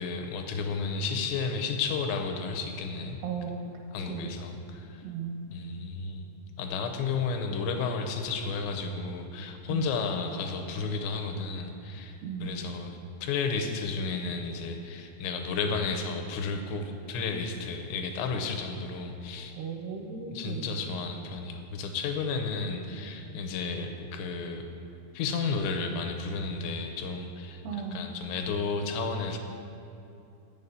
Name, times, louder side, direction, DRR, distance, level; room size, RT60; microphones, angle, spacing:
voice 1, 0.0-3.2 3.9-5.0 5.5-6.3 6.6-19.5 20.3-24.6 25.1-29.4, left 4 dB, 85° left, 4 dB, 2.9 m, -32 dB
voice 2, 3.2-3.7 4.0-4.4 5.0-5.5 9.7-9.9 12.2-12.7 19.6-20.8 27.6-28.0, right 6 dB, 85° right, 2 dB, 2.5 m, -36 dB
8.3 x 7.1 x 5.3 m, 2.8 s
omnidirectional pair, 5.1 m